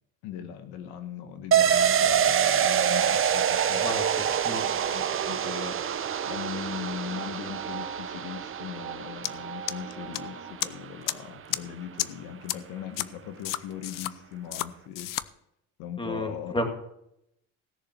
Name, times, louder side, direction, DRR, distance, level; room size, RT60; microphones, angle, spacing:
voice 1, 0.2-3.9 4.9-5.8 6.2-15.1 15.8-16.5, left 9 dB, 85° left, 8 dB, 1.4 m, -39 dB
sound 1, 1.5-10.9 11.2-11.3, right 8 dB, 35° right, 0.8 m, -26 dB
sound 2, 3.8-10.5, right 8 dB, 50° right, 2.5 m, -40 dB
sound 3, 9.2-9.3 9.7-10.2 10.6-10.7 11.1-11.2 11.5-11.6 12.0-12.1 12.5-12.6 13.0-13.1 13.4-14.1 14.5-14.7 14.9-15.2, left 14 dB, 55° left, 0.6 m, -30 dB
voice 2, 16.0-16.7, left 1 dB, 15° left, 4 dB, 2.3 m, -31 dB
17.0 x 6.7 x 6.0 m, 0.80 s
supercardioid pair, 95°, 38 cm